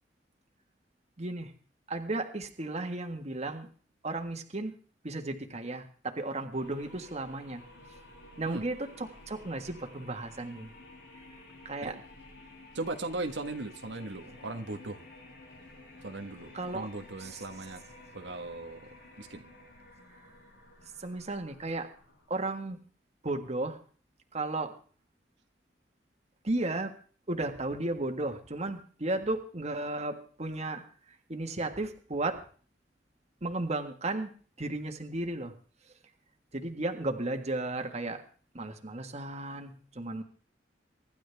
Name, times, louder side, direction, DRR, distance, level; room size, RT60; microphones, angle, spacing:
voice 1, 1.2-1.5 1.9-3.7 4.0-4.7 5.0-7.6 8.4-10.7 11.1-11.2 11.7-12.0 16.5-16.9 17.2-17.4 21.0-21.9 22.3-22.8 23.2-23.8 24.3-24.7 26.4-26.9 27.3-30.8 31.1-32.4 33.4-34.3 34.6-35.5 36.5-38.2 38.5-40.2, right 2 dB, 40° right, 5 dB, 1.6 m, -34 dB
sound 1, 6.5-22.4, left 2 dB, 85° left, 7.8 m, -52 dB
voice 2, 12.7-15.0 16.0-17.8 18.1-18.8 19.2-19.5, right 2 dB, 90° right, 4 dB, 1.5 m, -38 dB
24.5 x 11.5 x 3.5 m, 0.42 s
head